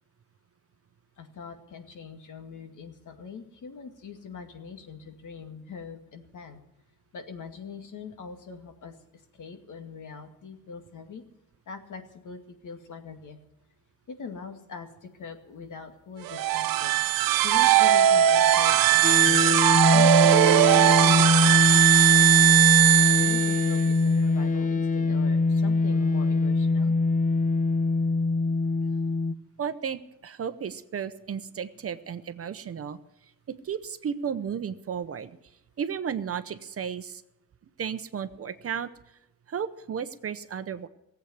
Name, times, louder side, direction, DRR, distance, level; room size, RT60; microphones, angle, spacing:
voice 1, 1.2-6.6 7.1-8.9 9.4-11.2 11.7-13.4 14.2-17.0 17.4-19.6 19.9-22.5 23.2-26.9, left 5 dB, 60° left, 5 dB, 2.1 m, -42 dB
sound 1, 16.3-23.9, right 13 dB, 85° right, 0.7 m, -19 dB
sound 2, 19.0-29.3, left 3 dB, 25° left, 0.5 m, -23 dB
voice 2, 29.6-33.0 33.6-35.4 35.8-37.2 37.8-38.9 39.5-40.9, right 7 dB, 45° right, 11 dB, 0.8 m, -33 dB
18.0 x 8.2 x 9.5 m, 0.92 s
wide cardioid pair, 155°, 34 cm